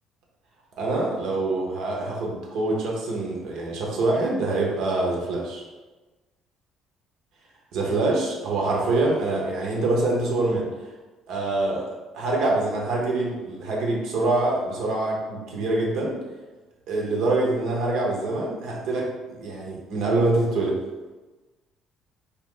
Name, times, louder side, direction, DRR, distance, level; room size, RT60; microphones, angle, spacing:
voice 1, 0.8-5.6 7.7-10.7 11.3-16.2 16.9-20.8, right 2 dB, 75° right, -2 dB, 0.8 m, -25 dB
2.5 x 2.2 x 3.7 m, 1.2 s
supercardioid pair, 70°, 0 cm